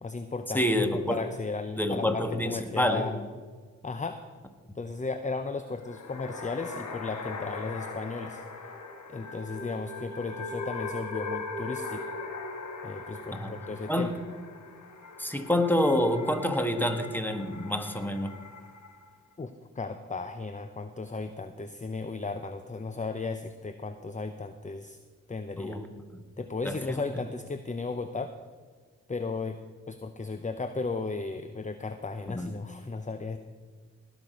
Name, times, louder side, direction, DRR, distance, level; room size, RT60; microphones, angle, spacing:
voice 1, 0.0-0.6 0.9-3.2 3.8-4.2 4.8-8.4 9.1-12.2 12.8-14.1 19.4-25.0 25.3-25.8 26.4-28.4 29.1-29.6 29.9-33.4, left 3 dB, 25° left, 9 dB, 0.8 m, -35 dB
voice 2, 0.5-1.2 1.8-3.1 13.3-13.5 13.9-14.1 15.2-18.3 25.6-25.9 26.6-27.0 32.3-32.5, left 1 dB, 5° left, 6 dB, 1.7 m, -27 dB
sound 1, 5.7-19.1, left 3 dB, 75° left, 1.5 m, -40 dB
18.5 x 6.3 x 5.2 m, 1.5 s
cardioid pair, 40°, 30 cm